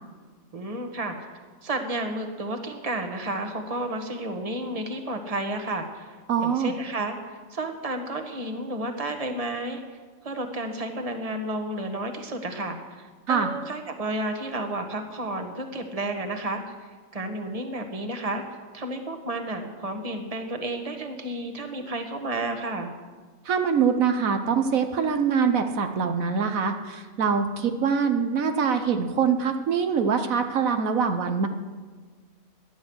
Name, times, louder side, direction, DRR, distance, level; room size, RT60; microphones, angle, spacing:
voice 1, 0.5-1.3 1.6-6.2 6.4-10.0 10.2-16.7 17.1-18.4 18.7-22.9, right 1 dB, 25° right, 5 dB, 1.5 m, -31 dB
voice 2, 6.3-6.7 13.3-13.5 23.4-31.5, right 6 dB, 75° right, 6 dB, 1.4 m, -24 dB
18.0 x 12.0 x 6.4 m, 1.5 s
omnidirectional pair, 1.5 m